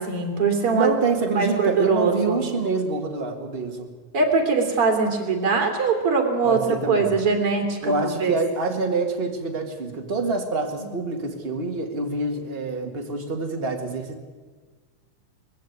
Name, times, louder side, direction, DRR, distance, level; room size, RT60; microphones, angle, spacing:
voice 1, 0.0-0.9 1.3-2.4 4.1-8.3 10.8-11.1, right 4 dB, 50° right, 3 dB, 3.6 m, -22 dB
voice 2, 0.7-3.9 6.4-7.2 7.8-14.2, right 3 dB, 25° right, 3 dB, 1.6 m, -26 dB
21.0 x 15.0 x 9.5 m, 1.4 s
omnidirectional pair, 3.4 m